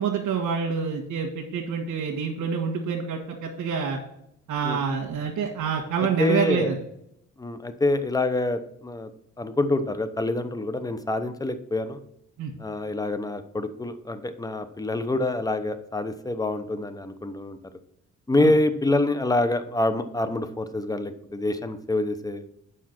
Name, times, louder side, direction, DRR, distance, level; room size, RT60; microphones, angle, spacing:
voice 1, 0.0-4.0 4.5-6.7 12.4-12.5 18.4-18.5, right 6 dB, 80° right, -2 dB, 1.6 m, -27 dB
voice 2, 6.2-6.7 7.4-9.1 9.4-12.0 12.6-17.6 18.3-22.4, left 2 dB, 10° left, 11 dB, 0.8 m, -26 dB
7.4 x 5.7 x 5.9 m, 0.75 s
cardioid pair, 90°, 30 cm